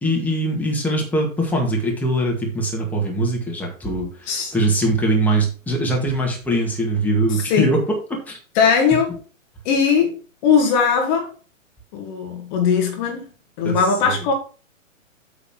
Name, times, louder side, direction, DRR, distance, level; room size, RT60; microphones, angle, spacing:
voice 1, 0.0-7.8 8.1-8.4 13.6-14.1, right 1 dB, 5° left, 1.9 m, -22 dB
voice 2, 8.5-9.1 9.6-10.2 10.4-11.3 11.9-13.3 13.6-14.3, left 6 dB, 35° left, 1.7 m, -19 dB
8.4 x 4.0 x 5.9 m
hypercardioid pair, 125°, 40 cm